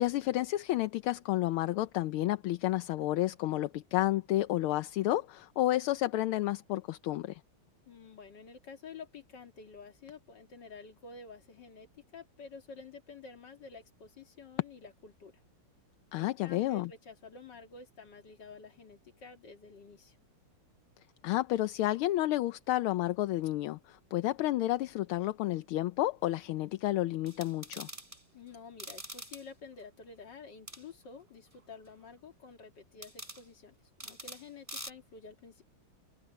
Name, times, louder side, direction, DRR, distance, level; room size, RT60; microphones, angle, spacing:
voice 1, 0.0-7.4 16.1-16.9 21.2-27.9, left 15 dB, 80° left, 1.5 m, -31 dB
voice 2, 7.9-11.9 12.1-15.3 16.1-20.2 28.3-33.7 34.0-35.6, left 4 dB, 55° left, 2.9 m, -50 dB
sound 1, 27.3-28.2 28.8-29.4 30.7-30.8 33.0-33.4 34.0-34.4 34.7-34.9, equal, 15° right, 4.8 m, -44 dB
omnidirectional pair, 2.4 m